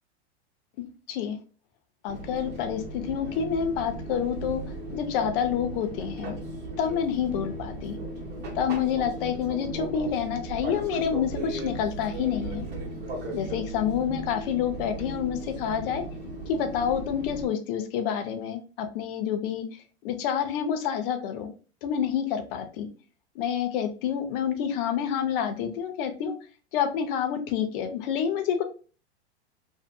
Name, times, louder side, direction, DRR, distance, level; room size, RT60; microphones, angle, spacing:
voice 1, 2.0-4.6 4.9-6.3 6.8-8.0 8.5-12.6 13.3-16.0 16.5-19.6 20.0-21.5 21.8-22.9 23.4-26.3 26.7-28.6, left 8 dB, 50° left, 7 dB, 0.6 m, -28 dB
Fixed-wing aircraft airplane, 2.1-17.5, right 1 dB, 30° right, 1.0 m, -37 dB
2.7 x 2.4 x 2.2 m, 0.37 s
hypercardioid pair, 105°, 34 cm